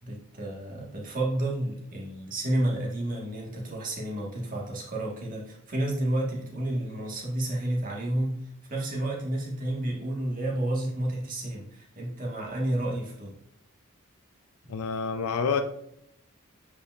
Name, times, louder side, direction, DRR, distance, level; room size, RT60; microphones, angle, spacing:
voice 1, 0.0-8.4 8.7-13.3, right 1 dB, 40° right, -2 dB, 1.6 m, -30 dB
voice 2, 14.7-15.6, left 5 dB, 85° left, 7 dB, 0.5 m, -28 dB
8.2 x 5.0 x 2.5 m, 0.74 s
head